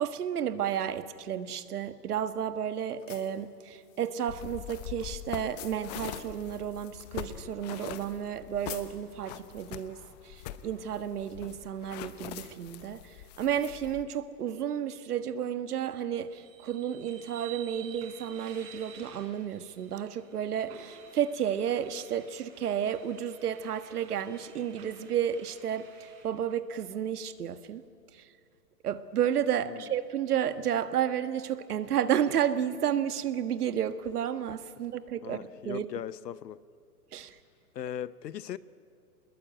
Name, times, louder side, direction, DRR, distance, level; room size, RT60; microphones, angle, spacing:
voice 1, 0.0-27.8 28.1-28.3 28.8-35.4 35.6-35.8 37.1-37.4, right 9 dB, 70° right, 1.6 m, -32 dB
sound 1, 1.3-9.9, left 11 dB, 50° left, 2.2 m, -53 dB
sound 2, 4.3-14.0, left 11 dB, 25° left, 0.8 m, -43 dB
sound 3, 16.3-26.2, right 8 dB, 30° right, 5.2 m, -52 dB
voice 2, 35.2-36.6 37.7-38.6, left 10 dB, 85° left, 1.0 m, -38 dB
25.0 x 21.0 x 8.9 m
hypercardioid pair, 155°, 48 cm